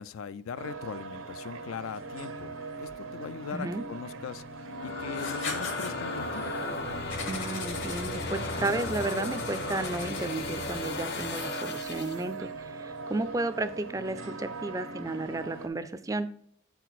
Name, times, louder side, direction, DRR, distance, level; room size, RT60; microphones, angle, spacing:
voice 1, 0.0-4.4 4.8-6.6, left 6 dB, 85° left, 16 dB, 0.4 m, -40 dB
sound 1, 0.6-15.7, right 3 dB, 85° right, 0.7 m, -40 dB
voice 2, 3.5-3.8 7.3-16.3, right 2 dB, 15° right, 12 dB, 0.3 m, -33 dB
sound 2, 4.5-12.2, left 3 dB, 50° left, 0.7 m, -36 dB
Writing, 5.1-5.9 7.1-11.4, left 4 dB, 70° left, 1.5 m, -40 dB
8.2 x 4.5 x 4.0 m, 0.66 s
head